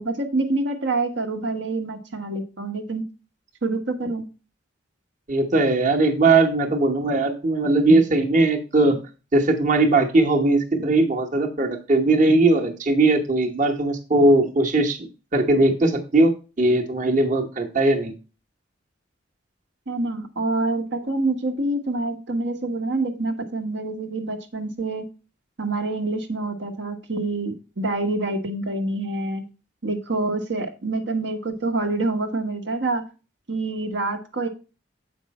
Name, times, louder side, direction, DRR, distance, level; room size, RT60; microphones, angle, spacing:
voice 1, 0.0-3.0 3.6-4.3 19.9-25.0 25.6-29.4 29.8-33.0 33.5-34.5, right 2 dB, 65° right, 3 dB, 1.1 m, -26 dB
voice 2, 5.3-9.0 9.3-15.0 15.3-16.3 16.6-18.1, right 2 dB, 40° right, 2 dB, 1.1 m, -19 dB
7.5 x 5.2 x 4.1 m, 0.32 s
head